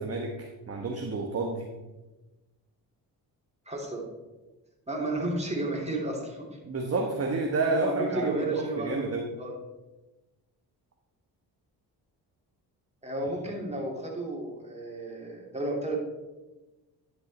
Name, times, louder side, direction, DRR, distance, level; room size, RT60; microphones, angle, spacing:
voice 1, 0.0-1.7 6.6-9.3, right 3 dB, 35° right, 2 dB, 1.1 m, -30 dB
voice 2, 3.7-4.0 4.9-6.6 7.7-9.5 13.0-16.0, right 2 dB, 15° right, -1 dB, 2.8 m, -32 dB
10.5 x 5.6 x 4.2 m, 1.1 s
supercardioid pair, 60°, 42 cm